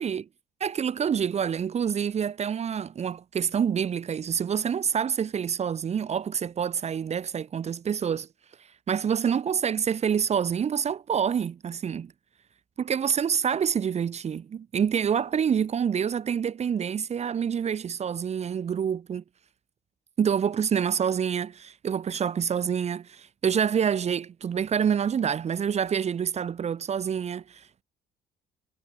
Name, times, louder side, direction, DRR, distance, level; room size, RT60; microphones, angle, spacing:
voice 1, 0.6-8.3 8.9-12.1 12.8-19.2 20.2-27.8, right 7 dB, 40° right, 1.6 m, -27 dB
cardioid pair, 110°, 17 cm